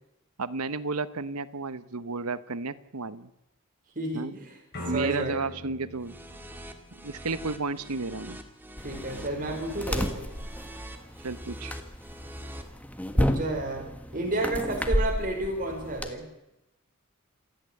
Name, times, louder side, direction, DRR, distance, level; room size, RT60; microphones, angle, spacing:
voice 1, 0.4-3.3 4.1-4.3 4.9-6.2 6.9-8.4 11.2-11.7, right 3 dB, 85° right, 14 dB, 1.0 m, -32 dB
voice 2, 3.9-4.5 4.9-5.4 8.8-10.3 13.1-13.9 14.1-16.2, right 2 dB, 40° right, 1 dB, 5.0 m, -31 dB
sound 1, 4.7-7.6, left 1 dB, 50° left, 5.5 m, -41 dB
sound 2, 6.0-12.6, equal, 10° right, 2.1 m, -43 dB
sound 3, 8.8-16.1, equal, 5° left, 1.5 m, -31 dB
27.5 x 10.0 x 9.6 m, 0.90 s
head